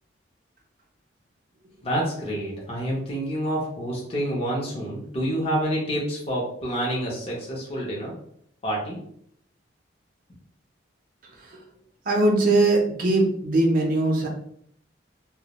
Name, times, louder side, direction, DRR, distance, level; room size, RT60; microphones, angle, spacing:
voice 1, 1.8-8.1 8.6-9.0, equal, 30° left, -4 dB, 0.5 m, -28 dB
voice 2, 12.1-14.3, right 2 dB, 45° right, 0 dB, 0.4 m, -21 dB
2.2 x 2.0 x 2.8 m, 0.66 s
head